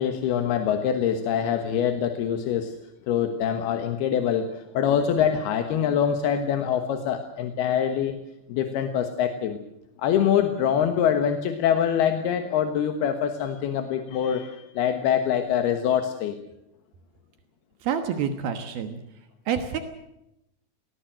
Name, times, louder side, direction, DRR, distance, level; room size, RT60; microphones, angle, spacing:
voice 1, 0.0-2.7 3.1-4.5 4.7-8.2 8.5-9.6 10.0-16.4, left 8 dB, 85° left, 7 dB, 3.3 m, -24 dB
voice 2, 17.8-19.0 19.5-19.8, right 7 dB, 75° right, 8 dB, 3.2 m, -27 dB
19.5 x 19.5 x 7.7 m, 0.84 s
omnidirectional pair, 4.4 m